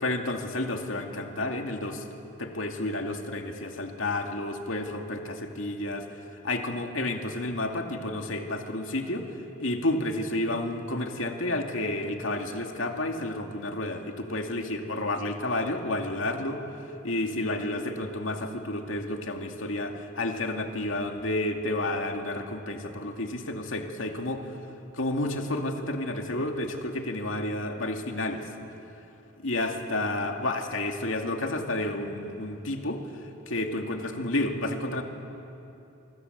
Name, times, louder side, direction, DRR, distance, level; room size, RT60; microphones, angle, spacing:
voice 1, 0.0-2.0 2.4-6.1 6.4-9.3 9.6-16.6 17.0-24.4 24.9-28.5 29.4-33.0 33.5-35.0, left 1 dB, 85° left, 3 dB, 2.4 m, -30 dB
26.5 x 25.5 x 8.1 m, 2.9 s
head